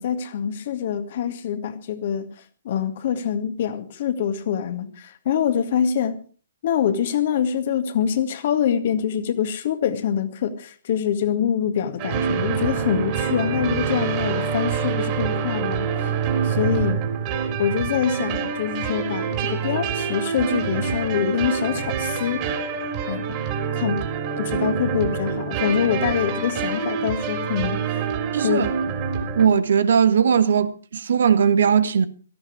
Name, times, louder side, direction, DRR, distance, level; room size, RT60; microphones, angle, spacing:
voice 1, 0.0-2.3 2.6-6.2 6.6-16.1 16.4-17.1 17.6-22.5 23.1-23.4 23.7-24.1 24.4-28.1 28.4-28.7, left 8 dB, 50° left, 2.0 m, -25 dB
sound 1, 12.0-29.5, right 6 dB, 35° right, 3.5 m, -26 dB
voice 2, 28.3-28.7 29.3-32.1, right 7 dB, 60° right, 1.2 m, -19 dB
17.5 x 13.5 x 4.8 m
figure-of-eight pair, 125°, 0 cm